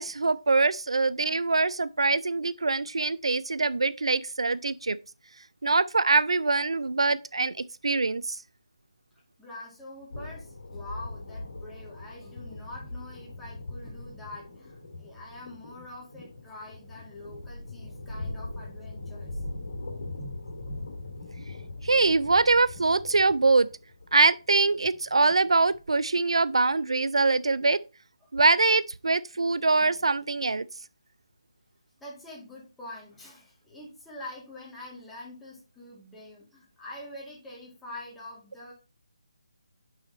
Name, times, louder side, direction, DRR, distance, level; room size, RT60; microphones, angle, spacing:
voice 1, 0.0-5.0 5.6-8.4 21.8-23.7 24.1-27.8 28.3-30.7, right 3 dB, 80° right, 0.3 m, -23 dB
voice 2, 9.4-19.4 28.2-28.3 29.8-30.0 32.0-38.7, left 1 dB, 5° left, 2.3 m, -45 dB
sound 1, 10.1-26.3, left 2 dB, 70° left, 2.0 m, -41 dB
6.0 x 5.6 x 4.0 m
figure-of-eight pair, 155°, 3 cm